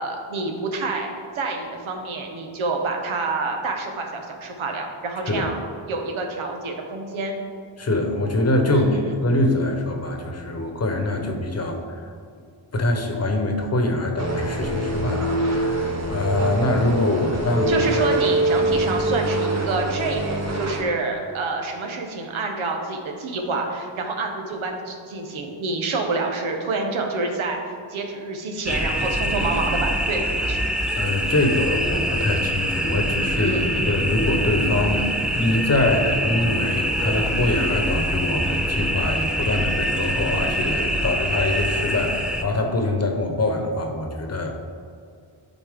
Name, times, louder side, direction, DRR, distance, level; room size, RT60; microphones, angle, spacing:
voice 1, 0.0-5.6 5.9-7.4 8.7-9.2 17.7-30.2 30.5-30.6 33.4-34.0, right 3 dB, 85° right, 2 dB, 1.2 m, -27 dB
voice 2, 7.8-12.0 12.7-17.8 30.9-33.5 33.9-35.0 35.3-44.5, left 2 dB, 35° left, 3 dB, 1.0 m, -24 dB
sound 1, 14.2-20.8, right 1 dB, 35° right, 1.1 m, -24 dB
sound 2, 28.7-42.4, equal, ahead, 0.3 m, -24 dB
11.5 x 4.2 x 3.7 m, 2.2 s
wide cardioid pair, 115°, 47 cm